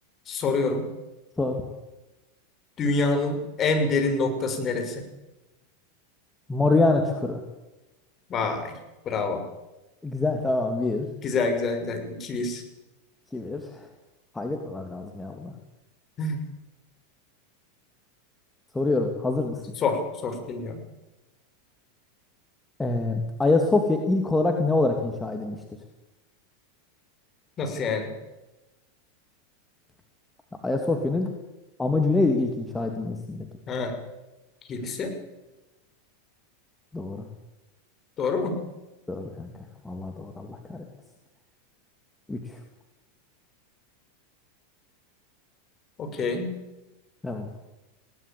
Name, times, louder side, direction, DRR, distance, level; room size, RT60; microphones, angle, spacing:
voice 1, 0.3-0.9 2.8-5.1 8.3-8.7 9.0-9.4 11.2-12.6 16.2-16.4 19.8-20.8 27.6-28.1 33.7-34.0 34.7-35.2 38.2-38.6 46.0-46.6, left 3 dB, 35° left, 6 dB, 6.0 m, -27 dB
voice 2, 6.5-7.4 10.0-11.1 13.3-13.9 14.3-15.5 18.7-19.6 22.8-25.6 30.6-31.3 31.8-33.5 36.9-37.2 39.1-39.5 39.8-40.8 42.3-42.4 47.2-47.5, left 2 dB, 10° left, 3 dB, 2.8 m, -25 dB
20.0 x 18.0 x 8.7 m, 1.0 s
hypercardioid pair, 95°, 0 cm